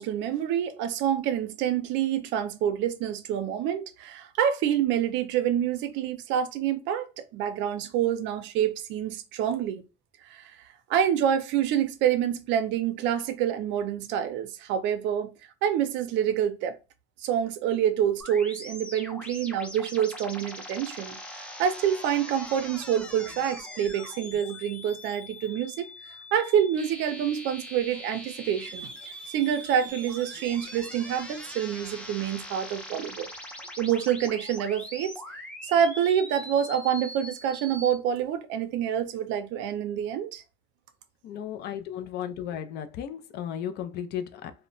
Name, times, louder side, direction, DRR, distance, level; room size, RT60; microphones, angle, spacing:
voice 1, 0.0-7.1 7.3-9.8 10.2-10.5 10.9-15.3 15.6-16.8 17.2-28.9 29.3-33.3 33.8-35.1 35.6-40.4, right 9 dB, 80° right, 0.5 m, -27 dB
sound 1, 18.2-37.9, left 1 dB, 5° left, 0.5 m, -42 dB
voice 2, 41.2-44.5, left 9 dB, 65° left, 0.4 m, -35 dB
2.1 x 2.1 x 3.8 m
cardioid pair, 140°, 19 cm